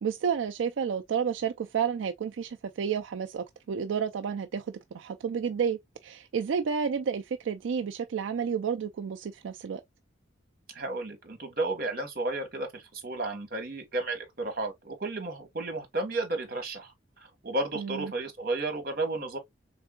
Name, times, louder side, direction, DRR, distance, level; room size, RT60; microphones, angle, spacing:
voice 1, 0.0-4.7 4.9-9.8 17.8-18.1, right 7 dB, 85° right, 0.4 m, -31 dB
voice 2, 10.7-16.9 17.4-19.4, right 2 dB, 50° right, 1.3 m, -32 dB
3.6 x 3.4 x 2.2 m
head